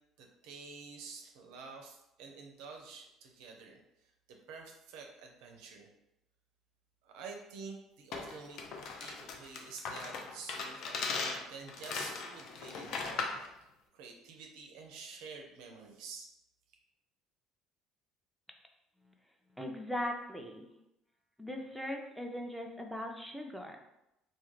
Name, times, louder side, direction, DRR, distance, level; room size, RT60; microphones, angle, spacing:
voice 1, 0.2-5.9 7.0-8.6 9.0-13.3 13.9-16.3, right 4 dB, 75° right, 2 dB, 0.4 m, -49 dB
sound 1, 8.1-13.5, left 4 dB, 60° left, 0.4 m, -38 dB
voice 2, 19.6-20.7 21.4-23.8, left 1 dB, ahead, 2 dB, 0.4 m, -39 dB
2.3 x 2.1 x 3.1 m, 0.86 s
hypercardioid pair, 65°, 0 cm